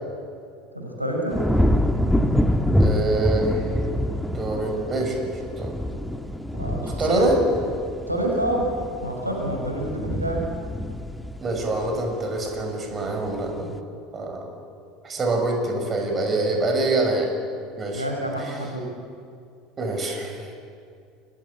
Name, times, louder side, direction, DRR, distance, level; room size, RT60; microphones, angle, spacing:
voice 1, 0.7-1.4 6.5-7.4 8.1-8.7 9.0-10.5 17.9-18.9, right 1 dB, 90° right, 0 dB, 5.6 m, -27 dB
sound 1, 1.3-12.6 13.0-13.5, left 1 dB, 5° left, 1.7 m, -26 dB
voice 2, 2.8-3.8 4.3-5.3 5.6-5.7 7.0-7.4 11.4-13.7 14.1-14.5 15.0-17.3 17.8-18.0 18.5-18.6 19.8-20.5, right 2 dB, 30° right, 4 dB, 6.5 m, -25 dB
29.5 x 22.5 x 8.6 m, 2.4 s
figure-of-eight pair, 70°, 0 cm